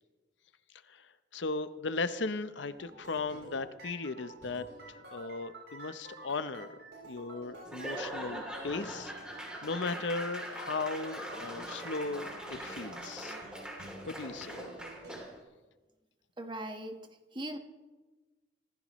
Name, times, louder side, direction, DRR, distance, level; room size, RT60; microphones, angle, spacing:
voice 1, 0.9-4.7 5.1-6.7 7.0-9.1 9.6-13.4 14.1-14.6, left 3 dB, 70° left, 12 dB, 0.7 m, -37 dB
sound 1, 2.6-15.1, right 1 dB, 65° right, 7.1 m, -50 dB
Laughter / Applause / Crowd, 7.6-15.4, right 1 dB, 5° right, 3.0 m, -42 dB
voice 2, 16.4-17.0 17.3-17.6, right 1 dB, 25° right, 5 dB, 1.4 m, -39 dB
25.5 x 15.5 x 3.1 m, 1.2 s
head